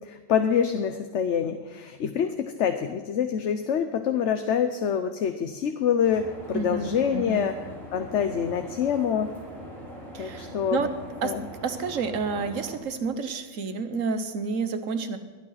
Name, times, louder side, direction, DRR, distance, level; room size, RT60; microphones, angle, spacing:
voice 1, 0.0-7.6 7.9-9.3 10.2-10.9 11.2-11.4, left 8 dB, 65° left, 7 dB, 1.1 m, -26 dB
sound 1, 6.0-12.8, equal, 50° right, 3.7 m, -42 dB
voice 2, 6.5-7.4 10.1-10.9 11.2-11.3 11.6-15.2, right 5 dB, 80° right, 9 dB, 1.5 m, -30 dB
22.0 x 9.3 x 5.7 m, 1.4 s
omnidirectional pair, 1.3 m